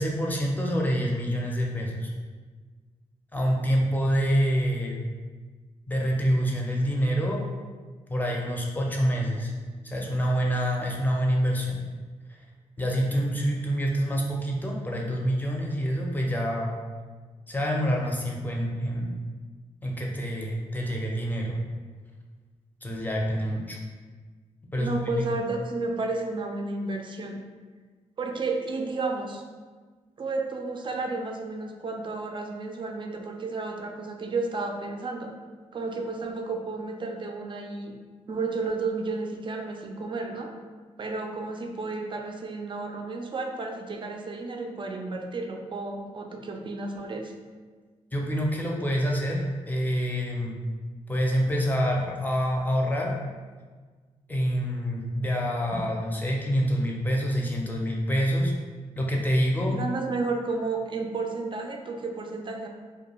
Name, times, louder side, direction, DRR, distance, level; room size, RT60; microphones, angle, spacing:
voice 1, 0.0-2.1 3.3-5.0 5.9-7.4 8.1-9.5 9.8-11.8 12.8-16.7 17.5-19.2 19.8-21.6 22.8-23.8 24.7-25.2 48.1-50.6 51.1-53.1 54.3-58.5 59.0-59.8, equal, 15° left, -2 dB, 0.6 m, -26 dB
voice 2, 24.8-27.4 28.2-29.4 30.2-35.3 35.7-37.9 38.3-40.5 41.0-47.3 59.7-62.7, right 3 dB, 40° right, 2 dB, 0.4 m, -32 dB
2.3 x 2.2 x 3.0 m, 1.4 s
cardioid pair, 60°, 13 cm